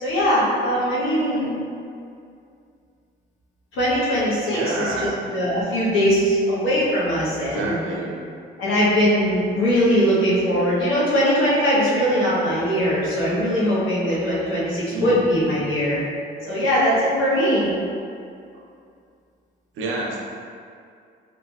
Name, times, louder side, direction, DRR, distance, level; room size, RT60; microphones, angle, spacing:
voice 1, 0.0-1.5 3.7-7.8 8.6-16.0 16.5-17.7, equal, 90° left, -8 dB, 1.2 m, -21 dB
voice 2, 4.5-5.1 7.4-8.2 14.9-15.2 19.7-20.2, right 2 dB, 80° right, -2 dB, 0.7 m, -28 dB
4.4 x 3.0 x 2.5 m, 2.4 s
cardioid pair, 90°, 20 cm